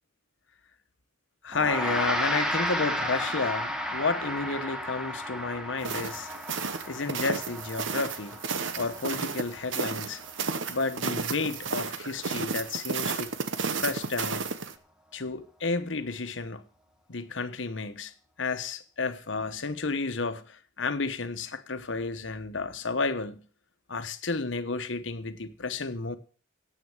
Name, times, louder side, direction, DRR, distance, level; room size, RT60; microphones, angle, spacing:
voice 1, 1.4-6.3 6.9-8.4 8.7-10.2 10.7-13.3 13.8-14.4 15.1-16.6 17.1-18.1 18.4-23.4 23.9-26.2, left 3 dB, 75° left, 1.1 m, -31 dB
Gong, 1.5-11.2, equal, 5° right, 1.3 m, -33 dB
sound 1, 5.8-14.7, right 5 dB, 75° right, 1.0 m, -33 dB
9.7 x 8.5 x 7.2 m
head